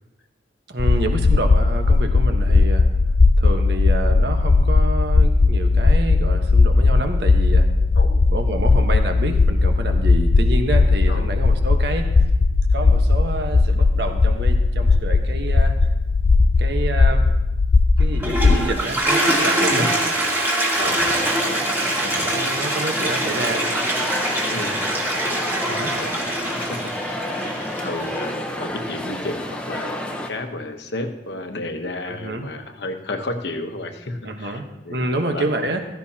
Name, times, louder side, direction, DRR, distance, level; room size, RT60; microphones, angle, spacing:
voice 1, 0.7-2.9 3.4-7.7 8.3-12.1 12.7-15.7 16.6-17.3 18.0-19.9 22.0-23.7 25.7-26.0 32.1-32.5 34.2-34.6 34.9-35.8, right 2 dB, 60° right, 5 dB, 1.2 m, -28 dB
sound 1, 0.8-18.6, left 3 dB, 40° left, 0.4 m, -17 dB
Toilet flush, 18.0-28.3, right 1 dB, 10° right, 2.1 m, -24 dB
voice 2, 19.7-20.2 20.8-21.1 24.5-24.9 25.8-26.9 27.8-35.8, left 2 dB, 70° left, 5 dB, 1.1 m, -32 dB
sound 2, 20.8-30.3, left 1 dB, 5° left, 0.9 m, -30 dB
15.5 x 14.5 x 2.9 m, 1.0 s
head